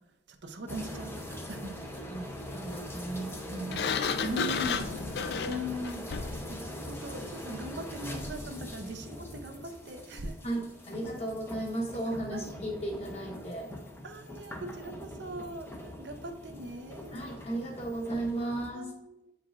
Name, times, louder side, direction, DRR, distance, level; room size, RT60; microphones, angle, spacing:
voice 1, 0.4-1.8 3.5-4.0 4.2-5.0 5.2-6.1 6.5-6.6 6.9-10.4 12.3-12.4 14.0-17.1 18.7-19.3, equal, 70° right, 6 dB, 0.6 m, -40 dB
sound 1, 0.7-18.7, left 1 dB, 10° left, 0.6 m, -42 dB
voice 2, 2.0-3.7 10.4-13.7 17.1-18.9, right 1 dB, 35° left, 0 dB, 1.1 m, -35 dB
Sliding door, 3.7-6.5, left 6 dB, 60° left, 0.3 m, -32 dB
8.3 x 4.7 x 2.4 m, 0.84 s
head